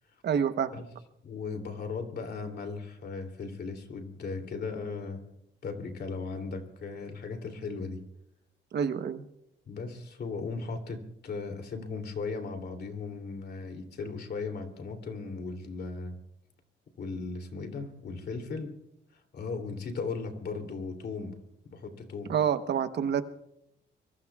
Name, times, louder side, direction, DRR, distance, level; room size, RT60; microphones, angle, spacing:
voice 1, 0.2-0.7 8.7-9.3 22.3-23.2, right 8 dB, 60° right, 10 dB, 1.1 m, -27 dB
voice 2, 1.2-5.2 5.6-8.0 9.7-16.2 17.0-18.8 19.3-21.4 21.6-22.3, left 4 dB, 55° left, 5 dB, 3.0 m, -37 dB
25.0 x 23.5 x 2.4 m, 0.80 s
cardioid pair, 90°, 20 cm